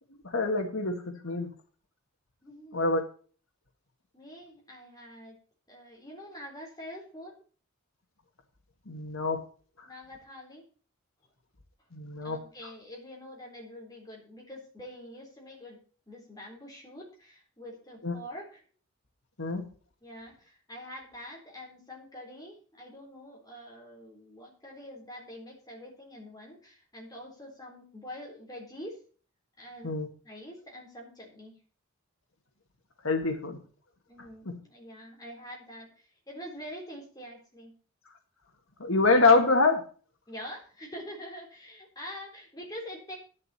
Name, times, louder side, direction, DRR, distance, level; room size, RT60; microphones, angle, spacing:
voice 1, 0.2-1.5 2.7-3.0 8.9-9.4 9.8-9.9 11.9-12.4 18.0-18.2 19.4-19.6 29.8-30.1 33.0-33.6 34.5-34.6 38.8-39.8, left 3 dB, 75° left, 4 dB, 1.8 m, -25 dB
voice 2, 2.4-2.8 4.1-5.4 5.7-7.4 9.8-10.6 12.2-15.8 16.1-18.6 20.0-29.0 29.6-30.0 30.2-31.6 34.1-35.9 36.3-37.7 40.3-43.2, equal, 20° left, -1 dB, 3.8 m, -45 dB
11.5 x 11.0 x 4.3 m, 0.41 s
head